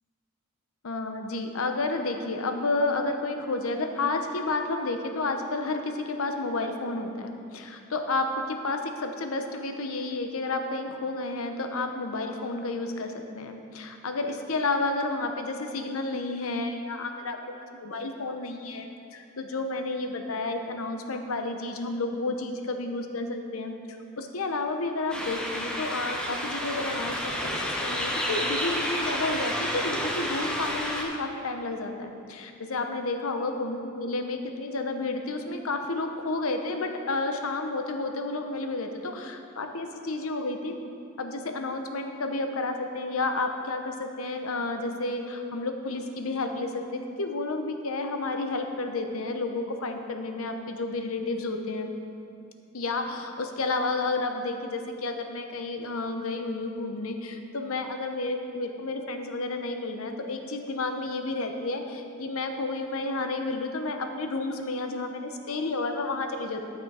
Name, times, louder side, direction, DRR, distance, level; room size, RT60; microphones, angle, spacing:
voice 1, 0.8-23.7 24.2-40.8 41.2-51.9 52.7-66.6, left 2 dB, 75° left, 5 dB, 0.8 m, -31 dB
sound 1, 25.1-31.0, equal, 5° left, 1.0 m, -30 dB
11.5 x 6.0 x 4.8 m, 2.6 s
head